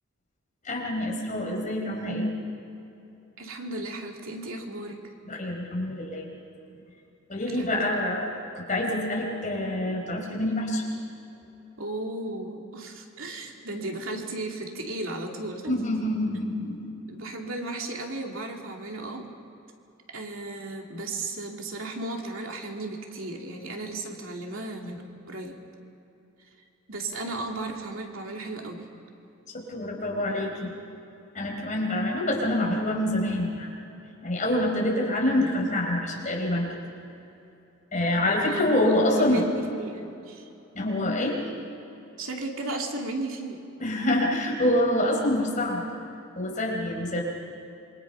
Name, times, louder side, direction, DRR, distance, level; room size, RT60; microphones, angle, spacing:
voice 1, 0.6-2.3 5.3-6.3 7.3-8.3 8.5-10.8 15.7-16.9 29.5-30.7 31.3-33.7 34.2-36.7 37.9-39.4 40.7-41.4 43.8-45.8 46.4-47.2, left 1 dB, 35° left, 0 dB, 4.5 m, -26 dB
voice 2, 3.4-5.0 7.5-7.9 11.8-15.8 17.1-19.3 20.1-25.6 26.6-28.9 38.5-40.5 42.2-43.6, right 2 dB, 70° right, 1 dB, 2.6 m, -35 dB
27.5 x 23.0 x 5.6 m, 2.8 s
head